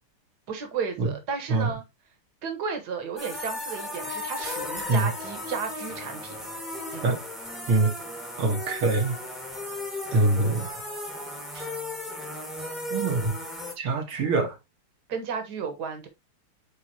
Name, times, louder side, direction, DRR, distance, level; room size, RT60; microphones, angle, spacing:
voice 1, 0.5-1.8 2.4-6.4 6.9-7.1 15.1-16.1, right 6 dB, 50° right, 1.9 m, -33 dB
sound 1, 3.2-13.7, left 1 dB, ahead, 1.5 m, -35 dB
voice 2, 8.4-9.1 10.1-10.7 12.9-13.3 13.8-14.5, right 3 dB, 75° right, 2.4 m, -23 dB
9.0 x 3.9 x 2.9 m
omnidirectional pair, 2.4 m